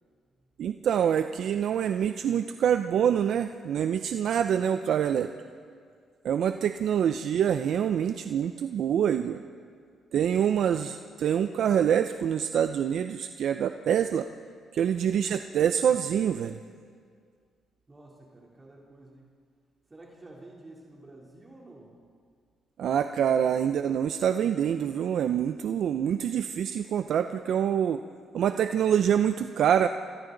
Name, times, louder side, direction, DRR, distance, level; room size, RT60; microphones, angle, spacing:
voice 1, 0.6-5.3 6.2-9.4 10.1-14.3 14.7-16.6 22.8-28.0 28.3-29.9, right 9 dB, 70° right, 9 dB, 0.6 m, -26 dB
voice 2, 17.9-19.3 19.9-22.0, right 2 dB, 25° right, -3 dB, 3.4 m, -50 dB
26.5 x 25.0 x 4.0 m, 2.1 s
cardioid pair, 90°, 0 cm